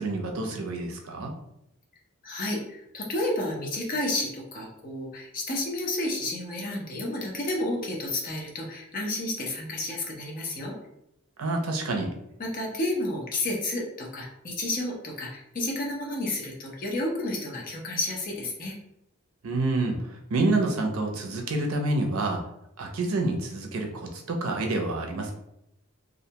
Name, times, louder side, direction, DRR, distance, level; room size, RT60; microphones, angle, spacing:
voice 1, 0.0-1.3 11.4-12.1 19.4-22.4 22.8-25.3, right 2 dB, 75° right, 2 dB, 0.5 m, -28 dB
voice 2, 2.2-10.8 12.4-18.8, left 1 dB, 40° left, -1 dB, 0.6 m, -31 dB
2.4 x 2.2 x 2.8 m, 0.80 s
head